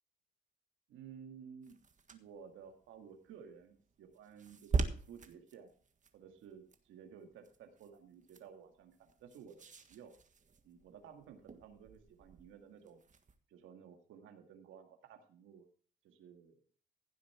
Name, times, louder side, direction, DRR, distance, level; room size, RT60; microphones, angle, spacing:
voice 1, 0.9-1.8 2.1-5.7 6.1-10.1 10.6-13.0 13.5-15.7 16.0-16.6, right 7 dB, 85° right, 5 dB, 2.0 m, -55 dB
sound 1, 1.6-13.4, right 4 dB, 40° right, 1.6 m, -43 dB
15.5 x 7.5 x 4.4 m, 0.44 s
cardioid pair, 90°, 20 cm